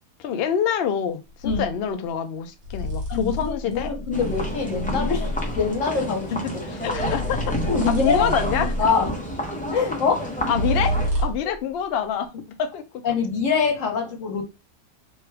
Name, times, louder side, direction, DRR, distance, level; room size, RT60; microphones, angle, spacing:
voice 1, 0.2-3.9 6.3-7.6 7.9-8.7 10.5-13.0, left 8 dB, 80° left, 0.5 m, -26 dB
sound 1, 1.4-1.7 2.6-5.6 6.8-9.1 10.4-11.6, equal, 70° right, 1.3 m, -28 dB
voice 2, 3.1-6.4 7.7-9.1 9.7-10.3 13.0-14.4, left 5 dB, 60° left, 1.3 m, -24 dB
sound 2, 4.1-11.1, equal, 10° left, 0.4 m, -30 dB
3.2 x 2.2 x 3.3 m
omnidirectional pair, 1.6 m